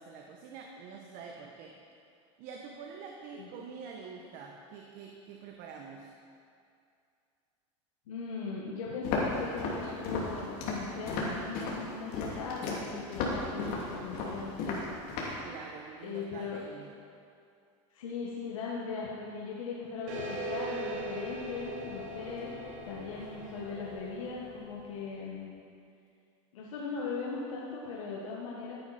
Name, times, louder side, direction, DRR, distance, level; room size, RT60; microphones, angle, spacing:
voice 1, 0.0-1.8 2.4-6.1 15.4-16.9, right 5 dB, 55° right, 1 dB, 1.1 m, -46 dB
voice 2, 8.1-14.9 16.0-16.6 17.9-25.5 26.5-28.8, left 5 dB, 90° left, -4 dB, 1.6 m, -39 dB
Walk footsteps, 9.0-15.4, left 3 dB, 60° left, 2.8 m, -34 dB
sound 1, 20.1-25.1, right 1 dB, 75° right, 3.4 m, -40 dB
14.5 x 9.3 x 4.3 m, 2.4 s
supercardioid pair, 125°, 17 cm